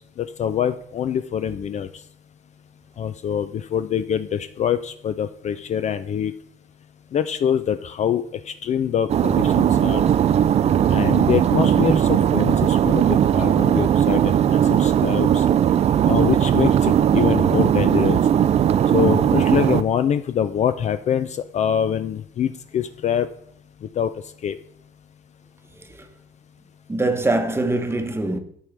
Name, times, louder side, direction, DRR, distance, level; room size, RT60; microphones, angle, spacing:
voice 1, 0.2-1.9 3.0-6.3 7.1-10.0 10.9-15.4 16.0-18.2 18.9-23.3 24.0-24.1 24.4-24.6, left 8 dB, 45° left, 0.4 m, -24 dB
sound 1, 9.1-19.8, right 9 dB, 40° right, 0.4 m, -18 dB
voice 2, 26.9-28.4, right 2 dB, 15° right, 1.0 m, -23 dB
12.0 x 4.6 x 3.3 m
cardioid pair, 110°, 17 cm